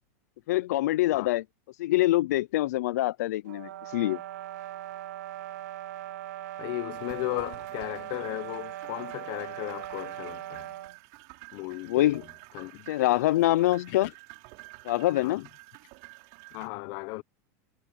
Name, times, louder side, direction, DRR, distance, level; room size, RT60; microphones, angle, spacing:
voice 1, 0.5-1.4 1.8-4.2 11.9-12.2 12.9-14.1 14.8-15.4, left 16 dB, 80° left, 0.5 m, -25 dB
sound 1, 3.5-11.0, right 13 dB, 85° right, 1.2 m, -40 dB
voice 2, 6.6-10.7 11.5-12.2 12.5-12.9 13.9-14.0 15.2-15.4 16.5-17.2, left 25 dB, 50° left, 0.9 m, -36 dB
sound 2, 6.9-16.7, right 28 dB, 55° right, 4.8 m, -50 dB
supercardioid pair, 145°, 9 cm